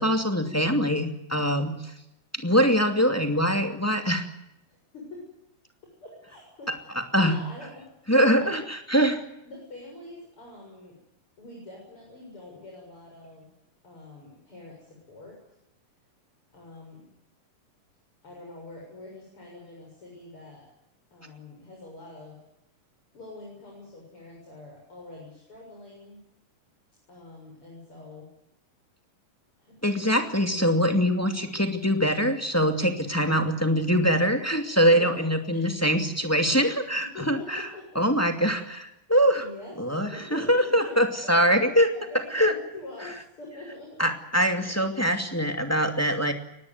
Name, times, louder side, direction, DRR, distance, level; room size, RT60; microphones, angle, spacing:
voice 1, 0.0-1.9 2.3-4.2 7.1-7.4 8.1-9.2 29.8-37.6 37.9-39.5 39.8-41.9 42.3-42.5 44.0-46.3, equal, 5° left, 6 dB, 1.7 m, -23 dB
voice 2, 4.7-5.3 6.0-6.7 7.1-7.9 8.2-8.5 9.4-11.0 11.4-13.5 13.8-15.4 16.5-17.1 18.2-20.7 21.1-22.4 23.1-26.2 27.1-28.3 29.6-29.8 34.9-35.6 37.1-38.3 39.4-41.4 41.9-44.1, left 2 dB, 40° left, -1 dB, 8.0 m, -44 dB
24.5 x 19.0 x 9.6 m, 0.84 s
omnidirectional pair, 3.9 m